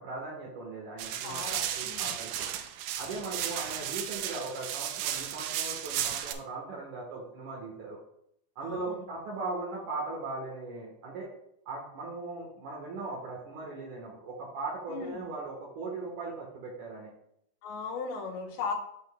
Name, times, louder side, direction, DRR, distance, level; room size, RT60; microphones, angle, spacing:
voice 1, 0.0-2.5 3.0-8.0 8.6-11.3 11.7-17.1, right 3 dB, 65° right, -2 dB, 2.4 m, -39 dB
sound 1, 1.0-6.3, right 10 dB, 80° right, 1.9 m, -34 dB
voice 2, 1.2-2.1 8.6-9.0 14.9-15.3 17.6-18.7, left 4 dB, 85° left, -1 dB, 3.1 m, -37 dB
11.0 x 4.3 x 2.2 m, 0.72 s
omnidirectional pair, 4.3 m